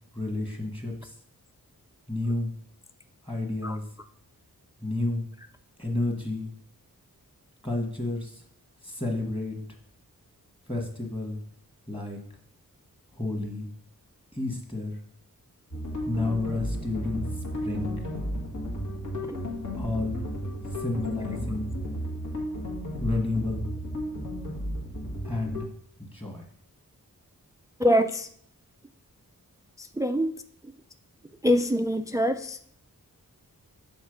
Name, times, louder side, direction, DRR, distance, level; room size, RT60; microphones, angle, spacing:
voice 1, 0.1-1.2 2.1-2.5 3.2-3.9 4.8-5.2 5.8-6.5 7.6-8.4 8.8-9.6 10.7-11.4 11.9-12.2 13.1-13.7 14.3-15.0 16.0-17.9 19.8-20.2 20.8-21.7 23.0-23.7 25.2-25.7 26.0-26.5, left 2 dB, 15° left, 2 dB, 1.6 m, -31 dB
sound 1, 15.7-25.6, equal, 60° left, 1.8 m, -33 dB
voice 2, 27.8-28.3 29.8-30.3 31.4-32.7, equal, 10° right, 8 dB, 0.3 m, -24 dB
6.3 x 4.2 x 5.1 m, 0.62 s
wide cardioid pair, 80°, 34 cm